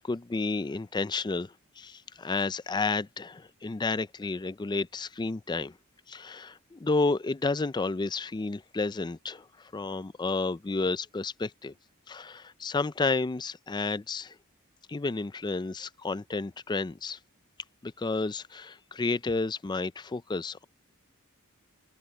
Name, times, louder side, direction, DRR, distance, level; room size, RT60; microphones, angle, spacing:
voice 1, 0.0-5.8 6.1-11.7 12.1-14.4 14.9-17.2 17.8-20.6, left 3 dB, 20° left, 0.4 m, -31 dB
open air
head